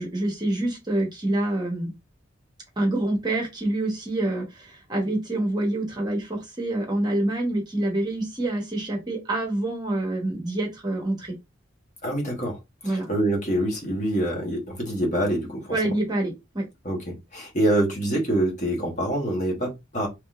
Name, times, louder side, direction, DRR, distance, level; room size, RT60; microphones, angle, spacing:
voice 1, 0.0-1.9 2.8-11.3 12.8-13.1 15.7-16.6, right 1 dB, 20° right, 1.0 m, -26 dB
voice 2, 12.0-12.6 12.8-15.8 16.8-20.1, right 1 dB, 40° left, 1.3 m, -25 dB
3.6 x 3.0 x 2.5 m
head